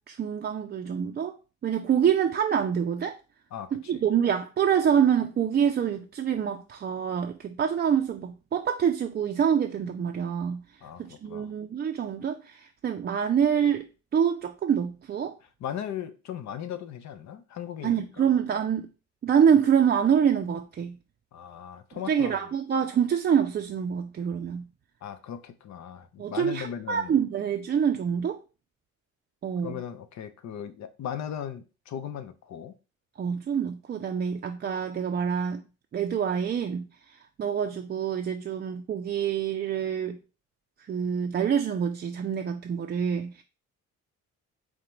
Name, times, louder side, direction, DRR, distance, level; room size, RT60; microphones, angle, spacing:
voice 1, 0.1-1.4 1.6-3.2 3.7-10.6 11.0-13.9 14.1-15.3 17.8-18.9 19.2-21.0 21.9-24.7 26.2-28.4 29.4-29.8 33.2-35.6 35.9-36.9 37.4-40.2 40.9-43.4, right 8 dB, 35° right, 0.4 m, -26 dB
voice 2, 3.5-4.0 10.8-11.5 15.6-18.3 21.3-22.4 25.0-27.1 29.6-32.7, left 9 dB, 65° left, 0.7 m, -37 dB
4.9 x 2.2 x 4.4 m
cardioid pair, 90°, 30 cm